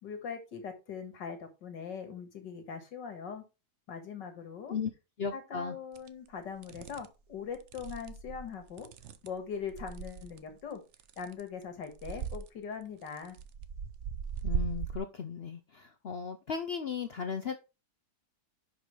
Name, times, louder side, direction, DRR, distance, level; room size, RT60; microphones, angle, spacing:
voice 1, 0.0-3.4 3.9-4.8 5.3-8.9 9.2-10.8 11.2-13.4, left 6 dB, 90° left, 2.3 m, -41 dB
voice 2, 5.2-5.8 14.4-17.6, left 6 dB, 65° left, 0.6 m, -36 dB
sound 1, 6.0-6.1 6.6-7.1 7.5-10.4 10.9-11.6 11.9-12.5 13.1-15.0, right 7 dB, 60° right, 0.8 m, -38 dB
10.5 x 5.4 x 3.2 m
omnidirectional pair, 1.9 m